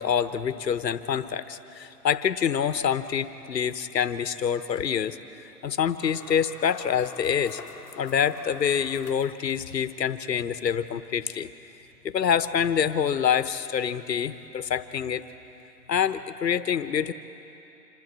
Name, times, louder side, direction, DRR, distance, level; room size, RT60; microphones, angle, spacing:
voice 1, 0.0-5.2 5.6-7.6 8.0-11.5 12.0-15.2 15.9-17.1, left 8 dB, 85° left, 13 dB, 1.1 m, -26 dB
sound 1, 6.0-10.0, left 7 dB, 65° left, 1.0 m, -47 dB
26.5 x 13.0 x 7.5 m, 3.0 s
hypercardioid pair, 175°, 49 cm